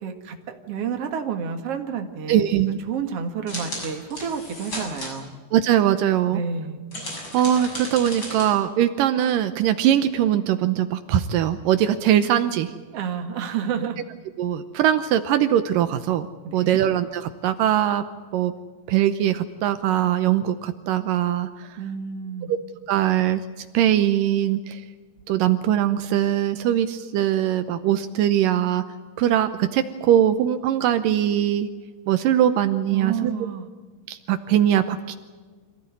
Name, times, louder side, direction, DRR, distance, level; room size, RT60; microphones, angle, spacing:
voice 1, 0.0-5.4 6.3-6.8 12.9-14.1 16.4-16.8 21.8-22.5 32.9-33.7, right 7 dB, 50° right, 5 dB, 2.8 m, -30 dB
voice 2, 2.3-2.8 5.5-6.4 7.3-12.7 14.4-16.3 16.5-18.0 18.3-18.5 18.9-21.7 22.9-23.4 23.7-24.8 25.3-28.8 29.2-31.7 32.1-33.3 34.1-35.2, right 11 dB, 80° right, 9 dB, 2.5 m, -21 dB
sound 1, 3.5-5.1 6.9-8.5, left 1 dB, 35° left, 7.6 m, -34 dB
26.5 x 15.5 x 9.6 m, 1.4 s
omnidirectional pair, 3.9 m